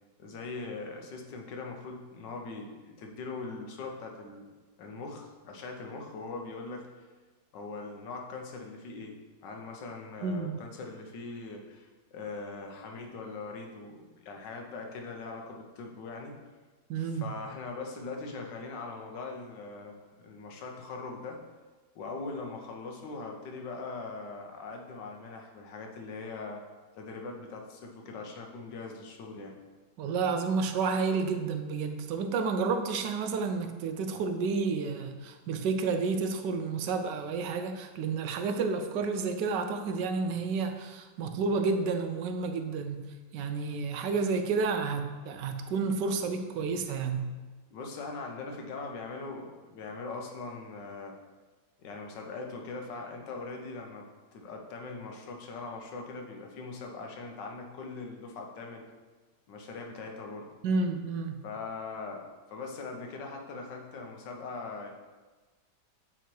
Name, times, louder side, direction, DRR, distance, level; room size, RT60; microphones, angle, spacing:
voice 1, 0.2-4.5 4.8-7.1 7.5-16.4 17.0-21.4 21.9-26.6 26.9-29.6 47.7-51.1 51.8-54.1 54.3-58.8 59.5-60.5 61.4-64.9, left 3 dB, 90° left, 2 dB, 1.5 m, -41 dB
voice 2, 10.2-10.6 16.9-17.3 30.0-47.3 60.6-61.4, right 4 dB, 80° right, 7 dB, 1.2 m, -30 dB
8.0 x 3.0 x 4.5 m, 1.3 s
omnidirectional pair, 1.9 m